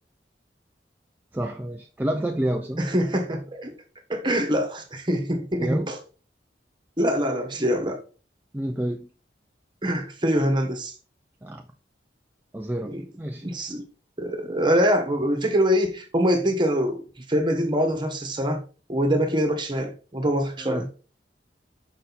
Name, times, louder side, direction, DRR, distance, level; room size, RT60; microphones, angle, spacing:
voice 1, 1.3-2.8 5.6-5.9 8.5-9.1 11.4-11.6 12.5-13.5 20.6-20.9, right 1 dB, 10° right, 0.5 m, -29 dB
voice 2, 2.8-3.7 4.1-6.0 7.0-8.0 9.8-10.9 12.8-13.0 13.4-13.9 14.2-18.6 18.9-20.9, equal, 25° right, 1.4 m, -24 dB
6.5 x 5.2 x 4.1 m
head